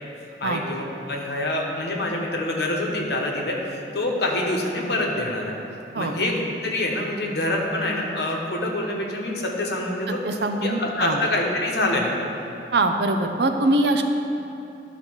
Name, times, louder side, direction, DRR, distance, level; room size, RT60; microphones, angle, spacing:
voice 1, 0.4-5.6 6.0-10.2 10.6-12.1, left 1 dB, 70° left, 0 dB, 1.1 m, -26 dB
voice 2, 10.2-11.2 12.7-14.0, right 2 dB, 70° right, 6 dB, 0.6 m, -22 dB
10.5 x 4.2 x 6.2 m, 2.8 s
head